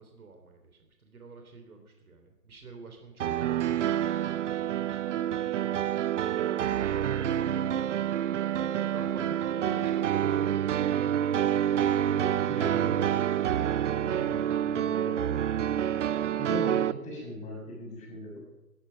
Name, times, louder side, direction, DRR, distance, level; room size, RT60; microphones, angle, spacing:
voice 1, 0.0-8.0 8.6-11.4, right 3 dB, 75° right, 4 dB, 3.4 m, -47 dB
sound 1, 3.2-16.9, right 10 dB, 55° right, 0.7 m, -28 dB
voice 2, 12.4-13.0 14.0-15.4 16.4-18.4, equal, 15° left, -1 dB, 6.1 m, -39 dB
14.0 x 14.0 x 5.7 m, 1.0 s
hypercardioid pair, 140°, 44 cm